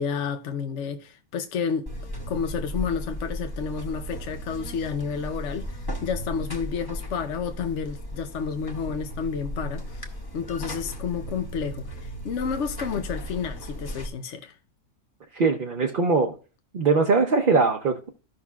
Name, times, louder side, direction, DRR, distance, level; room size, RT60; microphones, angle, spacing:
voice 1, 0.0-1.9 2.3-14.6, left 6 dB, 70° left, 1.0 m, -31 dB
Buzz, 1.9-14.1, equal, 20° left, 0.9 m, -36 dB
voice 2, 15.3-16.4 16.7-18.1, right 4 dB, 50° right, 0.8 m, -21 dB
15.0 x 5.8 x 2.3 m
omnidirectional pair, 1.4 m